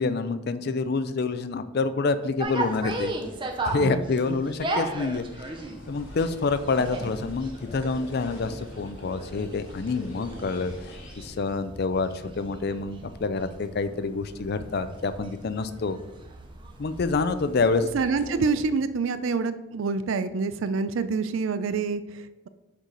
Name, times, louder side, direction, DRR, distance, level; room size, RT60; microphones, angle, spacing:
voice 1, 0.0-3.1 3.6-5.5 5.9-16.0 16.8-17.9, left 4 dB, 50° left, 12 dB, 0.4 m, -27 dB
sound 1, 2.4-18.7, right 2 dB, 25° right, 0.6 m, -37 dB
sound 2, 5.5-11.3, left 1 dB, 70° left, 1.7 m, -43 dB
voice 2, 17.9-22.5, right 4 dB, 70° right, 12 dB, 0.4 m, -27 dB
6.6 x 4.7 x 3.8 m, 1.0 s
head